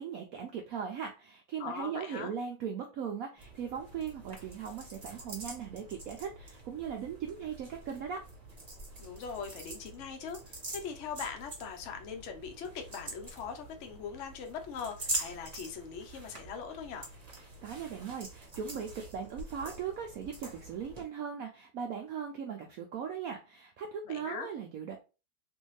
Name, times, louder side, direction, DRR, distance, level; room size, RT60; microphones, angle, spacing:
voice 1, 0.0-8.3 17.6-25.0, right 7 dB, 80° right, 0.7 m, -39 dB
voice 2, 1.6-2.3 9.0-17.1 24.1-24.5, left 6 dB, 75° left, 0.6 m, -41 dB
sound 1, 3.4-21.0, right 2 dB, 30° right, 0.7 m, -45 dB
3.5 x 2.6 x 3.0 m
omnidirectional pair, 2.1 m